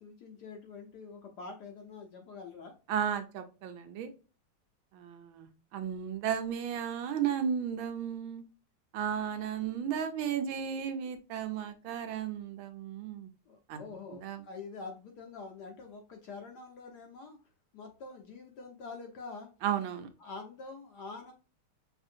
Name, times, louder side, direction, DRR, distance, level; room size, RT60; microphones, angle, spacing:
voice 1, 0.0-2.7 13.5-17.4 17.7-19.5 20.2-21.3, left 4 dB, 70° left, 3 dB, 1.0 m, -46 dB
voice 2, 2.9-4.1 4.9-8.4 8.9-13.3 13.7-13.8 14.1-14.4 19.6-20.1, right 8 dB, 75° right, 8 dB, 1.3 m, -34 dB
5.4 x 2.6 x 2.5 m, 0.33 s
omnidirectional pair, 2.3 m